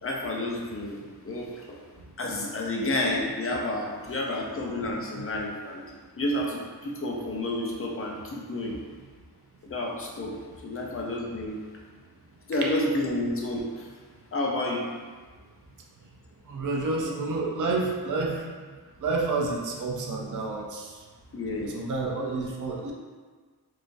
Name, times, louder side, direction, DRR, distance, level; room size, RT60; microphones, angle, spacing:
voice 1, 0.0-1.8 2.2-5.8 6.2-8.8 9.6-10.4 10.6-11.6 12.5-13.9 14.3-14.9 21.3-21.8, left 1 dB, 35° left, -1 dB, 0.5 m, -30 dB
voice 2, 16.5-18.5 19.0-21.0 21.6-22.9, right 3 dB, 55° right, -1 dB, 0.5 m, -29 dB
3.6 x 2.5 x 2.5 m, 1.5 s
wide cardioid pair, 135°, 38 cm